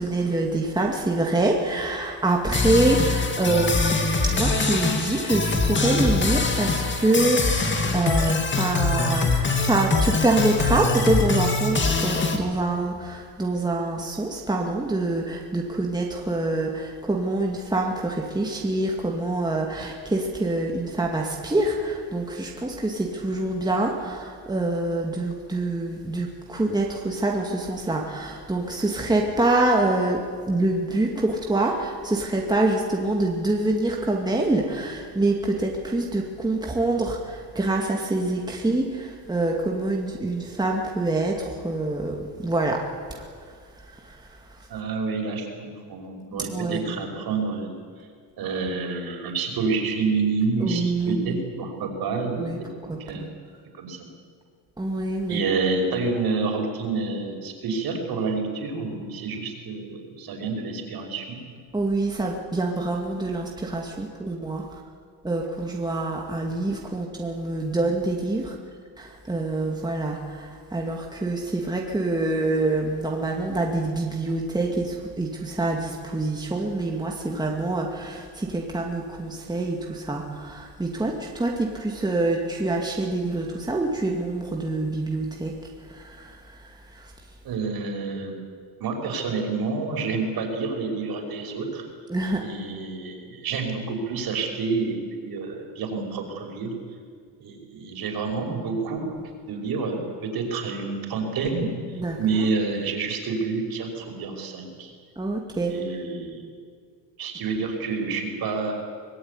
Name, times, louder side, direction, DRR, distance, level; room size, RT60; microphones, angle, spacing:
voice 1, 0.0-42.9 43.1-44.4 46.3-47.0 50.6-51.4 52.4-52.6 52.9-53.3 54.8-55.4 61.7-64.8 65.2-68.6 69.0-85.6 85.8-87.1 92.1-92.4 101.9-102.2 105.2-105.8, right 2 dB, 10° right, 0 dB, 2.2 m, -26 dB
sound 1, 2.5-12.4, left 3 dB, 25° left, 2.7 m, -23 dB
voice 2, 44.7-47.7 48.4-52.7 53.1-53.3 53.7-54.1 55.3-61.4 87.4-88.3 88.8-91.8 92.4-96.7 97.4-99.1 99.5-101.7 102.2-104.9 105.7-106.4 107.2-108.7, right 4 dB, 55° right, 2 dB, 5.6 m, -28 dB
24.5 x 20.0 x 9.8 m, 2.1 s
cardioid pair, 145°, 43 cm